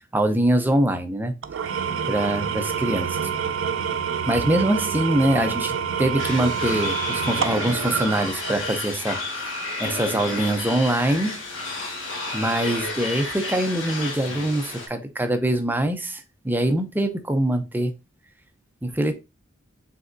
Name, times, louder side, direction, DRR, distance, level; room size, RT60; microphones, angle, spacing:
voice 1, 0.1-1.3 1.6-1.8 2.1-3.3 4.3-9.5 9.8-11.4 12.3-17.9 18.8-19.1, right 1 dB, 10° right, 7 dB, 0.5 m, -24 dB
Engine / Tools, 1.4-8.9, right 7 dB, 75° right, 0.4 m, -27 dB
sound 1, 6.2-14.9, left 2 dB, 70° left, 1.4 m, -31 dB
5.0 x 3.4 x 2.5 m, 0.26 s
head